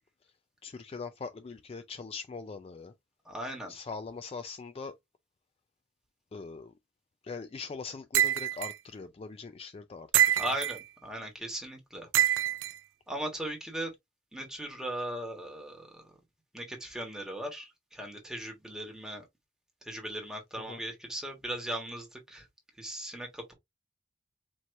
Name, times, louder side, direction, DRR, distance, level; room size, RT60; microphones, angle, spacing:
voice 1, 0.6-2.9 3.7-5.0 6.3-6.7 7.2-10.5 20.6-20.8, left 4 dB, 30° left, 0.3 m, -42 dB
voice 2, 3.2-3.7 10.4-12.1 13.1-13.9 14.3-16.0 16.5-19.3 19.8-22.5 22.8-23.5, right 1 dB, 5° right, 1.3 m, -38 dB
sound 1, 8.1-8.7 10.1-10.8 12.1-12.7, right 12 dB, 80° right, 0.3 m, -25 dB
4.5 x 2.9 x 2.5 m
head